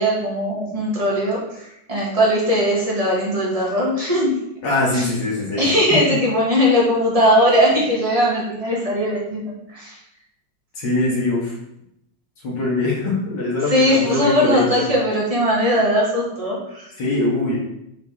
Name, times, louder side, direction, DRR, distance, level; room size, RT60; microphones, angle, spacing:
voice 1, 0.0-4.3 4.9-5.1 5.6-10.0 13.7-16.9, equal, 20° right, -4 dB, 1.5 m, -19 dB
voice 2, 4.6-5.7 10.8-11.5 12.4-14.8 17.0-17.6, left 2 dB, 70° left, -4 dB, 2.3 m, -22 dB
6.8 x 3.8 x 3.6 m, 0.78 s
omnidirectional pair, 2.0 m